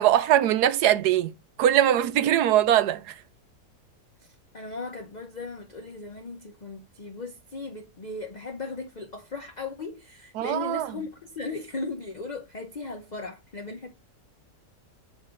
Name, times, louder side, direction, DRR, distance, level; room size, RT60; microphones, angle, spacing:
voice 1, 0.0-1.3 1.6-3.1 10.4-10.9, right 11 dB, 75° right, 1.1 m, -21 dB
voice 2, 4.2-13.9, left 3 dB, 35° left, 0.7 m, -37 dB
7.3 x 3.3 x 5.0 m
omnidirectional pair, 1.7 m